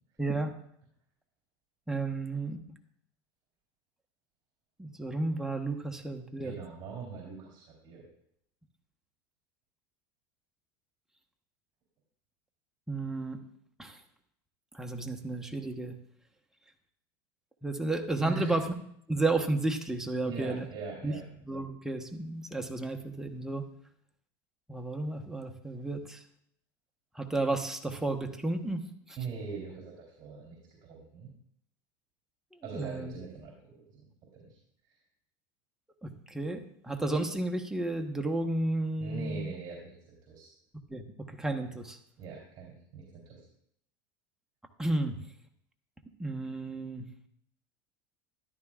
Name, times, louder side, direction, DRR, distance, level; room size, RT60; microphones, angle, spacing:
voice 1, 0.2-0.5 1.9-2.6 4.8-6.5 12.9-13.4 13.8-14.0 14.7-16.0 17.6-18.6 19.1-20.6 21.0-21.2 21.5-23.7 24.7-26.2 27.1-29.2 32.7-33.1 36.0-39.5 40.9-42.0 44.8-45.2 46.2-47.1, right 2 dB, 5° right, 4 dB, 1.1 m, -32 dB
voice 2, 6.4-8.0 18.2-18.6 20.2-21.2 29.2-31.3 32.6-34.0 34.3-34.6 39.0-40.5 42.2-43.4, right 5 dB, 40° right, -1 dB, 3.3 m, -41 dB
13.5 x 11.0 x 2.4 m, 0.69 s
supercardioid pair, 115°, 12 cm